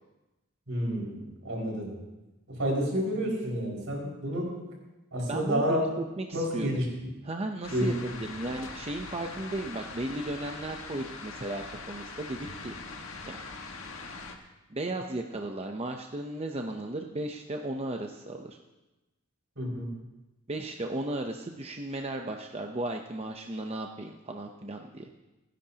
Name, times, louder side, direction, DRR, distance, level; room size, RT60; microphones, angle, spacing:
voice 1, 0.7-2.0 2.5-4.5 5.1-5.9 6.3-6.9 7.7-7.9 19.6-19.9, equal, 75° right, -3 dB, 5.4 m, -30 dB
voice 2, 5.3-5.8 6.2-6.8 7.2-7.9 8.2-12.7 13.3-13.4 14.7-18.6 20.5-25.1, right 2 dB, 30° right, 3 dB, 0.7 m, -35 dB
sound 1, 7.6-14.4, left 3 dB, 90° left, 1.5 m, -42 dB
28.5 x 10.5 x 2.9 m, 1.0 s
head